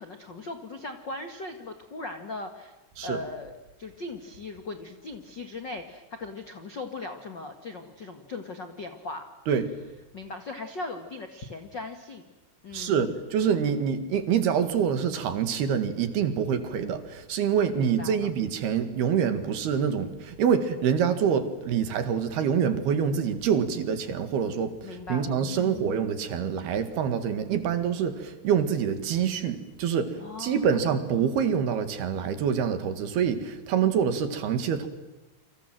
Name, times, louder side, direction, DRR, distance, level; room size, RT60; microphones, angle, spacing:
voice 1, 0.0-2.7 3.0-9.3 10.1-12.3 12.6-13.0 17.8-18.3 24.8-26.1 30.2-30.8, left 3 dB, 80° left, 7 dB, 0.9 m, -39 dB
voice 2, 12.7-34.9, right 7 dB, 60° right, 10 dB, 3.6 m, -26 dB
29.5 x 26.0 x 7.7 m, 1.1 s
omnidirectional pair, 5.5 m